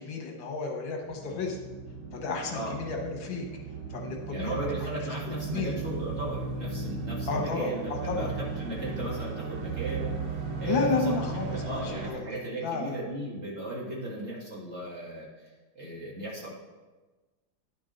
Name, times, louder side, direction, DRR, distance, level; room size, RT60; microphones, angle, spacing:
voice 1, 0.0-1.6 2.1-3.4 3.9-4.7 5.4-5.8 7.3-8.3 10.7-12.3 12.6-12.9, left 4 dB, 70° left, 1 dB, 1.7 m, -32 dB
sound 1, 1.0-12.1, right 5 dB, 70° right, 1.7 m, -36 dB
voice 2, 4.3-10.2 10.6-10.9 11.5-16.5, right 1 dB, 35° right, -6 dB, 2.0 m, -36 dB
10.5 x 5.4 x 3.8 m, 1.2 s
omnidirectional pair, 2.2 m